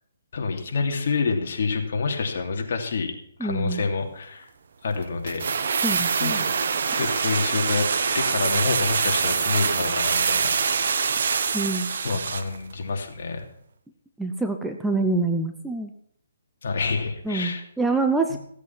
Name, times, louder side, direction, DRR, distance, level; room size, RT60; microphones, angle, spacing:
voice 1, 0.3-3.1 3.4-4.5 4.8-5.4 6.2-6.5 6.9-7.9 8.1-11.0 12.0-13.5 16.6-17.6 18.3-18.4, left 4 dB, 55° left, 3 dB, 2.9 m, -27 dB
voice 2, 3.4-3.9 5.8-6.4 11.5-12.2 14.2-15.9 17.2-18.4, right 3 dB, 5° right, 5 dB, 0.7 m, -26 dB
sound 1, 5.3-12.6 12.8-12.9, right 5 dB, 60° right, 1.3 m, -24 dB
16.0 x 8.3 x 5.9 m, 0.69 s
hypercardioid pair, 165°, 0 cm